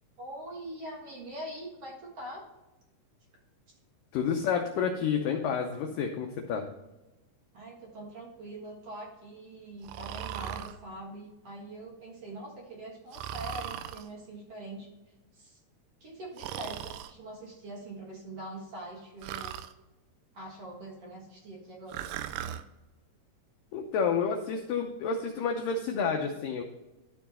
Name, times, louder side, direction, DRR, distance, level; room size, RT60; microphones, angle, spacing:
voice 1, 0.2-2.4 7.5-14.9 15.3-15.6 16.0-19.5 20.3-22.1, right 1 dB, 55° right, -2 dB, 1.8 m, -43 dB
voice 2, 4.1-6.7 23.7-26.6, left 6 dB, 85° left, 3 dB, 1.9 m, -29 dB
Breathing, 9.8-10.8 13.1-14.1 16.4-17.1 19.2-19.7 21.9-22.6, right 10 dB, 80° right, 2.3 m, -38 dB
12.5 x 4.5 x 4.2 m, 1.0 s
omnidirectional pair, 4.9 m